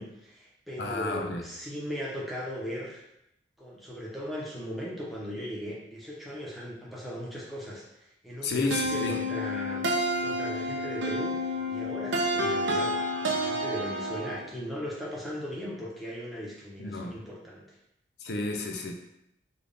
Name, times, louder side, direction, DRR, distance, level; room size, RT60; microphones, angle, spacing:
voice 1, 0.0-3.0 3.6-7.8 8.2-9.8 10.2-11.3 11.7-12.9 13.3-17.6, equal, ahead, -6 dB, 0.7 m, -38 dB
voice 2, 0.8-1.4 8.4-9.2 16.8-17.2 18.2-18.9, left 3 dB, 60° left, 2 dB, 0.5 m, -31 dB
sound 1, 8.7-14.5, equal, 80° right, 0.5 m, -29 dB
3.4 x 2.3 x 3.8 m, 0.83 s
head